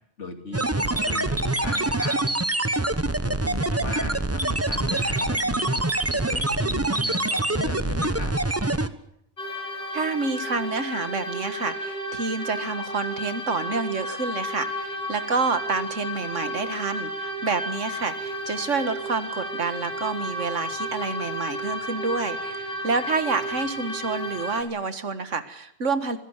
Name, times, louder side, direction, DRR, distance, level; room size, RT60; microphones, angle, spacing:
voice 1, 0.2-2.2 3.2-5.8 6.1-8.3, left 3 dB, 70° left, 6 dB, 3.2 m, -37 dB
sound 1, 0.5-8.9, right 2 dB, 15° right, 1.0 m, -25 dB
sound 2, 9.4-24.6, equal, 50° left, 3.9 m, -32 dB
voice 2, 9.9-26.2, right 4 dB, 80° right, 11 dB, 2.0 m, -28 dB
24.5 x 16.5 x 8.2 m, 0.73 s
omnidirectional pair, 1.3 m